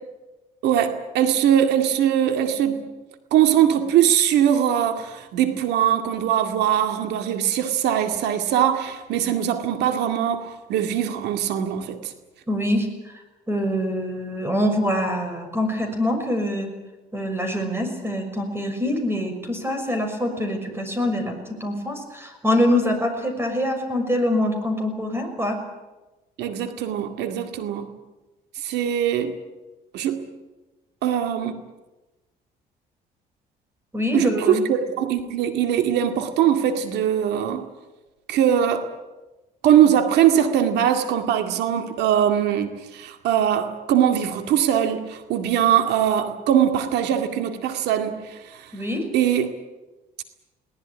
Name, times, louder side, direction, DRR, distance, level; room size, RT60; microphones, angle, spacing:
voice 1, 0.6-2.8 3.3-12.1 26.4-27.9 28.6-29.4 29.9-30.3 31.0-31.6 34.1-37.7 38.3-38.9 39.6-48.7 49.1-49.5, right 10 dB, 80° right, 7 dB, 2.2 m, -21 dB
voice 2, 12.5-13.1 13.5-16.7 17.1-25.6 33.9-34.6 48.7-49.1, left 1 dB, 15° right, 6 dB, 6.2 m, -24 dB
22.0 x 19.0 x 9.8 m, 1.1 s
cardioid pair, 110°, 17 cm